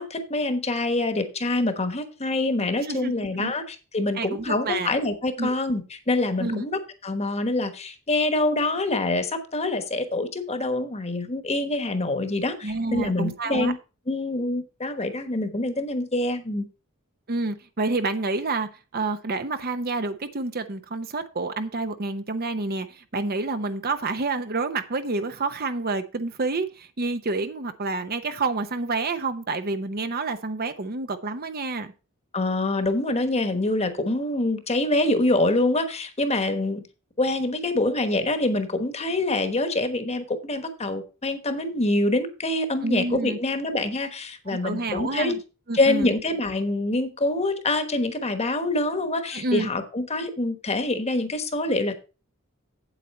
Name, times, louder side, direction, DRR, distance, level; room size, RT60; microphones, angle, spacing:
voice 1, 0.0-13.8 14.1-16.7 32.3-36.8 37.2-45.3 45.7-52.0, left 2 dB, 30° left, 8 dB, 1.2 m, -25 dB
voice 2, 2.8-3.5 4.1-4.9 5.4-5.5 6.4-6.6 12.6-13.7 17.3-31.9 42.8-43.4 44.5-45.4 45.7-46.1 49.3-49.7, right 3 dB, 45° right, 9 dB, 0.8 m, -28 dB
8.3 x 8.2 x 4.2 m, 0.32 s
head